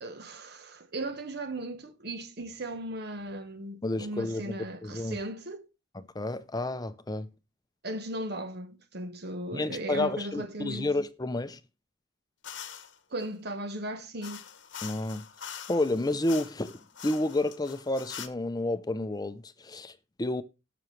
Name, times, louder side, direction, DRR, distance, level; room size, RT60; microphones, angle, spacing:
voice 1, 0.0-5.7 7.8-10.9 13.1-14.4, right 1 dB, 55° right, 1.1 m, -37 dB
voice 2, 3.8-5.2 5.9-7.3 9.5-11.6 14.8-15.3 15.7-16.8 17.0-20.4, left 2 dB, 20° left, 0.6 m, -30 dB
sound 1, 12.4-13.0 14.2-18.3, left 8 dB, 65° left, 1.0 m, -44 dB
18.0 x 6.0 x 3.2 m
head